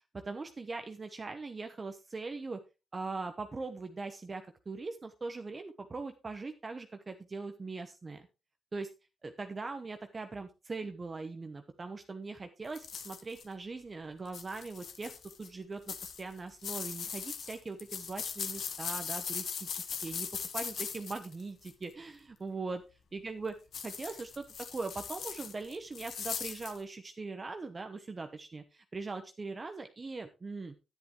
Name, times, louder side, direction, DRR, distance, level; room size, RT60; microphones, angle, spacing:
voice 1, 0.1-2.6 2.9-8.3 8.7-8.9 9.2-15.1 15.4-20.3 20.5-22.8 23.1-23.6 23.8-24.4 24.7-30.7, right 3 dB, 30° right, 6 dB, 1.0 m, -41 dB
sound 1, 12.8-13.4 14.3-15.5 15.9-21.8 23.7-26.8, left 7 dB, 65° left, 1.5 m, -40 dB
10.5 x 10.5 x 3.2 m, 0.28 s
cardioid pair, 125°, 0 cm